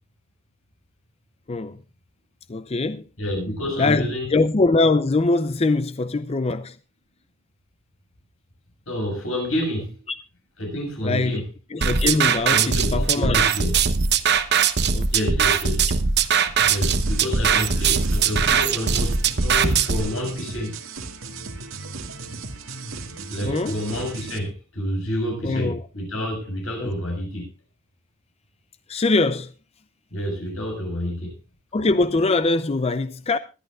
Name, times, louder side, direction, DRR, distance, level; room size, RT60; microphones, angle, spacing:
voice 1, 1.5-1.8 2.5-3.0 3.8-6.8 10.1-10.2 11.0-11.4 11.7-13.5 14.9-15.3 23.4-23.8 25.4-25.8 26.8-26.9 28.9-29.5 31.7-33.4, left 3 dB, 30° left, 0.5 m, -22 dB
voice 2, 3.2-4.3 8.9-10.0 10.6-11.5 12.5-13.8 15.1-15.9 16.7-20.7 23.3-27.5 30.1-31.4, equal, 85° left, 6.3 m, -29 dB
sound 1, 11.8-20.0, right 6 dB, 55° right, 1.0 m, -20 dB
sound 2, 16.6-24.4, right 3 dB, 85° right, 2.0 m, -36 dB
21.5 x 11.5 x 2.4 m
head